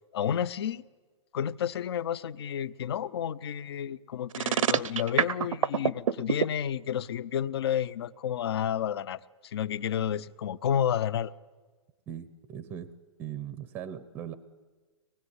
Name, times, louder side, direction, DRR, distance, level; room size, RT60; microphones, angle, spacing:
voice 1, 0.1-0.8 1.3-11.3, left 9 dB, 50° left, 0.7 m, -31 dB
sound 1, 4.3-6.5, right 8 dB, 90° right, 0.8 m, -25 dB
voice 2, 12.1-12.9 13.2-14.3, right 9 dB, 10° right, 0.7 m, -39 dB
24.5 x 20.0 x 9.7 m
hypercardioid pair, 175°, 16 cm